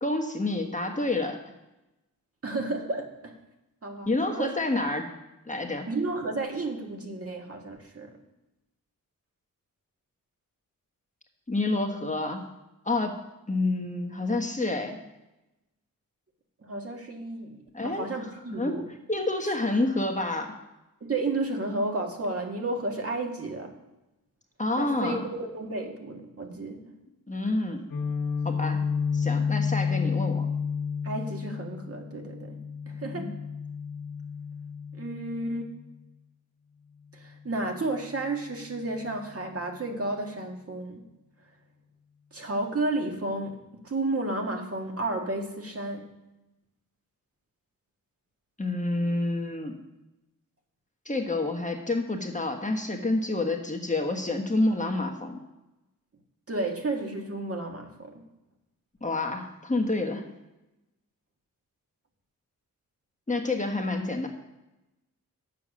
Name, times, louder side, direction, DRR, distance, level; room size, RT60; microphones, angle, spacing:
voice 1, 0.0-1.4 4.0-5.0 5.5-5.9 11.5-12.4 12.8-13.2 13.5-15.0 17.7-18.3 18.5-18.8 19.1-20.5 24.6-25.3 27.3-27.8 28.4-28.8 29.1-30.5 33.1-33.3 48.6-49.8 51.0-55.4 59.0-60.2 63.3-64.3, left 2 dB, 20° left, 3 dB, 1.3 m, -28 dB
voice 2, 2.4-3.4 3.8-4.5 5.9-8.1 11.9-12.1 16.6-18.9 19.4-19.5 21.0-23.7 24.8-26.9 31.0-32.6 32.9-33.3 34.9-35.7 37.1-41.0 42.3-46.1 56.5-58.2, right 2 dB, 45° right, 2 dB, 1.8 m, -32 dB
Guitar, 27.9-35.8, left 6 dB, 70° left, 1.5 m, -31 dB
8.3 x 7.5 x 6.2 m, 0.96 s
wide cardioid pair, 90°, 34 cm